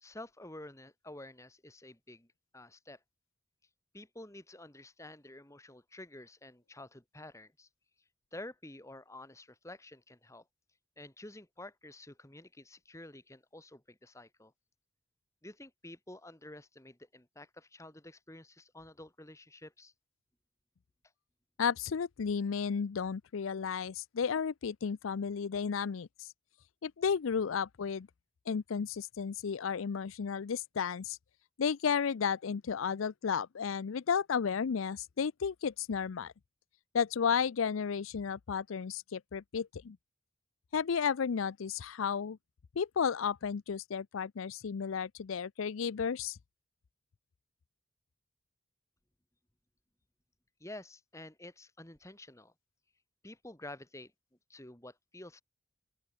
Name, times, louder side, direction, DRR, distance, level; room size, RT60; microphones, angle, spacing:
voice 1, 0.0-2.3 2.5-3.0 3.9-7.7 8.3-10.4 11.0-14.5 15.4-19.9 50.6-52.5 53.2-54.1 54.5-55.4, left 1 dB, 15° left, 2.0 m, -50 dB
voice 2, 21.6-26.3 26.8-28.1 28.5-31.2 31.6-36.3 36.9-40.0 40.7-42.4 42.8-46.4, left 6 dB, 80° left, 0.5 m, -33 dB
open air
head